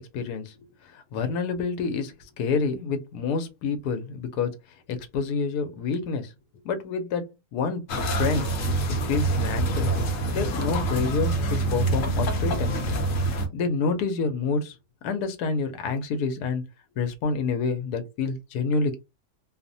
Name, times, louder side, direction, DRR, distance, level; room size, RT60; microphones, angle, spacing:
voice 1, 0.1-0.6 0.9-4.5 4.9-6.3 6.6-8.5 8.9-9.9 10.3-12.8 13.5-14.7 15.0-16.6 17.0-19.0, left 4 dB, 85° left, 1.1 m, -28 dB
sound 1, 7.9-13.5, right 2 dB, 65° left, 0.9 m, -26 dB
2.8 x 2.0 x 2.6 m
omnidirectional pair, 1.6 m